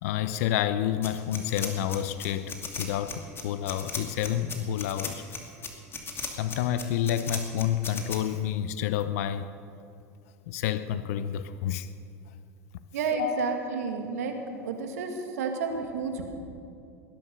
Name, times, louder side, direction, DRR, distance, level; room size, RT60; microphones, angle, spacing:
voice 1, 0.0-5.2 6.4-9.5 10.5-11.9 13.1-13.6, left 10 dB, 70° left, 0.7 m, -29 dB
sound 1, 1.0-8.2, left 5 dB, 30° left, 2.7 m, -36 dB
voice 2, 12.9-14.3 14.6-16.3, right 5 dB, 80° right, 2.3 m, -31 dB
20.0 x 11.0 x 6.6 m
hypercardioid pair, 95°, 8 cm